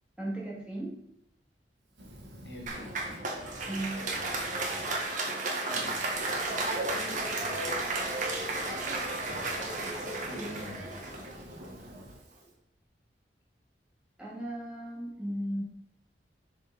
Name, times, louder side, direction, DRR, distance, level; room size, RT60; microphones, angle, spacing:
voice 1, 0.2-1.0 3.7-4.1 10.4-10.5 14.2-15.6, right 1 dB, 5° right, -6 dB, 2.1 m, -36 dB
Fire, 1.9-5.0 5.5-12.5, equal, 70° right, 1.6 m, -50 dB
voice 2, 2.4-3.2 4.5-4.9 5.4-6.2 6.9-7.8 9.3-9.4 10.0-10.9, equal, 75° left, 1 dB, 1.6 m, -47 dB
Applause, 2.7-12.0, right 2 dB, 45° right, 1.4 m, -33 dB
7.4 x 5.0 x 4.1 m, 0.76 s
head